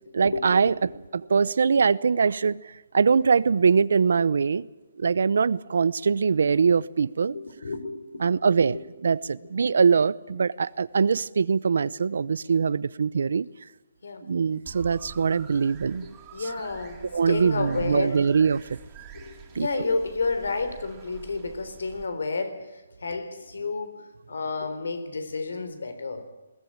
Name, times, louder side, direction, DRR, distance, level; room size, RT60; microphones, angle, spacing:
voice 1, 0.1-2.6 2.9-4.7 5.0-7.3 8.2-13.5 14.2-16.1 16.4-16.5 17.1-18.6 19.5-19.7, right 5 dB, 75° right, 20 dB, 0.8 m, -22 dB
voice 2, 7.3-8.5 14.0-14.2 16.3-18.3 19.1-22.7 23.0-26.3, left 3 dB, 85° left, 10 dB, 3.9 m, -31 dB
sound 1, 14.6-22.1, right 6 dB, 20° right, 3.2 m, -47 dB
21.0 x 18.0 x 8.8 m, 1.1 s
hypercardioid pair, 165°, 0 cm